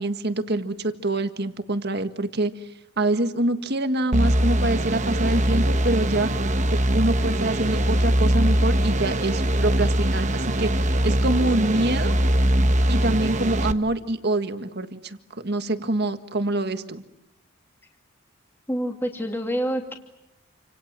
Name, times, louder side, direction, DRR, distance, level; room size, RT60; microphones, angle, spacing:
voice 1, 0.0-2.7 3.0-6.3 6.7-12.2 12.9-15.2 15.4-17.0, right 2 dB, 50° right, 9 dB, 1.7 m, -25 dB
sound 1, 4.1-13.7, right 1 dB, 35° right, 1.1 m, -22 dB
voice 2, 18.7-19.9, equal, 10° left, 3 dB, 2.5 m, -27 dB
29.0 x 27.0 x 7.6 m, 0.88 s
head